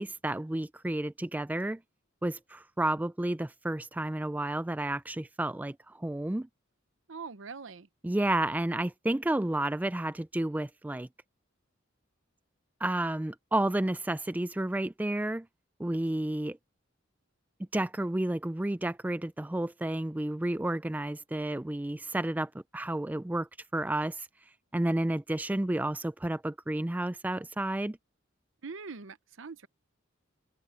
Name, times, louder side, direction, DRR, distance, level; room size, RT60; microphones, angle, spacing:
voice 1, 0.0-1.8 2.2-6.5 8.0-11.1 12.8-15.5 15.8-16.6 17.7-23.5 23.7-24.3 24.7-28.0, right 1 dB, 10° right, 0.3 m, -31 dB
voice 2, 7.1-7.9 28.6-29.7, right 4 dB, 70° right, 0.8 m, -42 dB
head